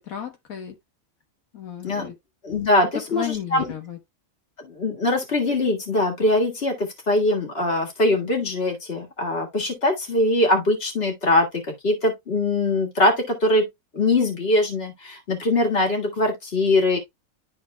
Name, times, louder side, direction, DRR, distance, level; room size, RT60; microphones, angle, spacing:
voice 1, 0.1-0.7 1.5-2.1 3.1-4.0, left 9 dB, 85° left, 1.6 m, -33 dB
voice 2, 2.4-3.7 4.6-11.5 11.8-13.7 13.9-17.0, left 2 dB, 45° left, 2.1 m, -22 dB
12.0 x 4.1 x 2.2 m
omnidirectional pair, 1.4 m